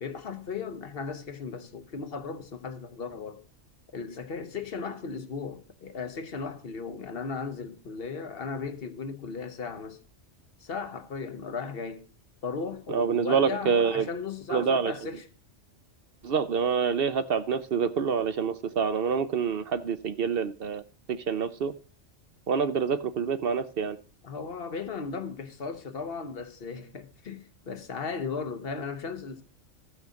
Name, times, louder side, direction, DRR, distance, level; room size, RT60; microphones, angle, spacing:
voice 1, 0.0-3.4 3.9-10.0 10.6-12.1 12.4-15.2 24.2-29.4, left 5 dB, 55° left, 1.0 m, -36 dB
voice 2, 12.9-14.1 14.5-14.9 16.2-20.8 21.1-21.7 22.5-24.0, right 6 dB, 60° right, 0.8 m, -27 dB
14.5 x 6.4 x 5.0 m
omnidirectional pair, 1.2 m